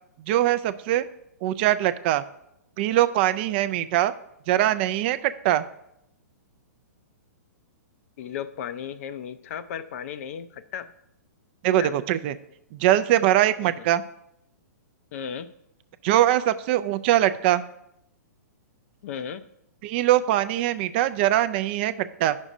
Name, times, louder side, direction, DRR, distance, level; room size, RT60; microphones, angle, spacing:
voice 1, 0.3-1.0 1.4-2.2 2.8-4.1 4.5-5.6 11.6-12.4 12.7-14.0 16.0-17.6 19.8-22.4, right 13 dB, 40° right, 13 dB, 0.3 m, -22 dB
voice 2, 8.2-10.9 11.8-11.9 13.6-13.9 15.1-15.5 19.0-19.5, left 8 dB, 55° left, 13 dB, 0.5 m, -35 dB
9.8 x 6.2 x 2.7 m, 0.76 s
hypercardioid pair, 140°, 9 cm